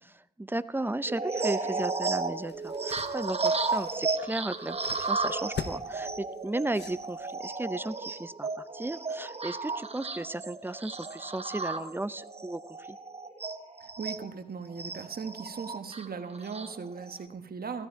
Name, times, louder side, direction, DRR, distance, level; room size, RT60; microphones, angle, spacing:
voice 1, 0.0-13.0, right 2 dB, 10° right, 15 dB, 0.5 m, -35 dB
sound 1, 1.1-14.2 14.8-17.2, right 3 dB, 35° right, 1.0 m, -34 dB
sound 2, 2.1-7.5, left 7 dB, 85° left, 0.7 m, -44 dB
voice 2, 13.8-17.9, right 5 dB, 65° right, 7 dB, 1.3 m, -38 dB
15.5 x 12.5 x 4.6 m, 0.82 s
cardioid pair, 60°, 17 cm